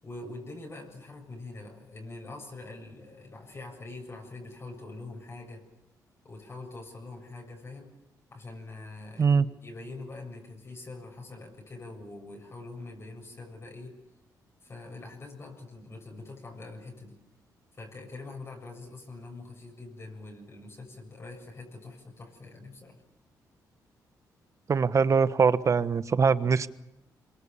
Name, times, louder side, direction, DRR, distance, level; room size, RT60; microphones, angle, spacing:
voice 1, 0.0-5.6 6.2-7.9 8.3-14.0 14.6-17.2 17.8-23.0, left 2 dB, 35° left, 1 dB, 7.4 m, -44 dB
voice 2, 24.7-26.7, right 5 dB, 45° right, 14 dB, 1.2 m, -22 dB
26.0 x 23.5 x 7.0 m, 0.91 s
cardioid pair, 80°, 7 cm